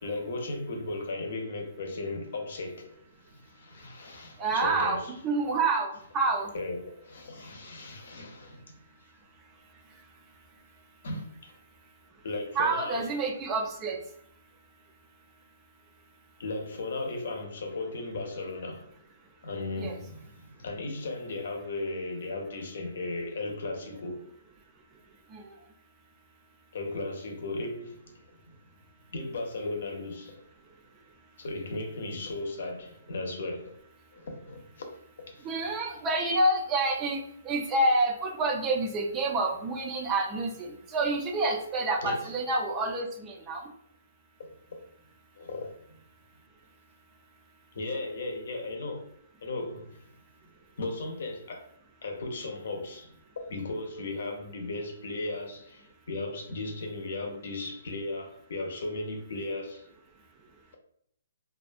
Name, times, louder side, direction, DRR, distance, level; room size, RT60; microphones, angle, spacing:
voice 1, 0.0-3.0 3.2-5.1 6.5-8.8 11.0-11.5 12.2-13.1 16.4-18.9 19.4-24.2 26.7-28.6 29.1-30.4 31.4-33.7 34.1-34.9 35.3-35.5 42.0-42.3 45.4-46.0 47.7-49.0 49.4-50.1 50.8-51.7 52.0-59.9, left 2 dB, 65° left, 0.7 m, -36 dB
voice 2, 4.4-6.5 12.6-14.0 19.8-19.9 25.3-25.4 35.4-43.6, right 2 dB, 20° right, 0.4 m, -28 dB
2.4 x 2.3 x 2.5 m
hypercardioid pair, 155°, 0 cm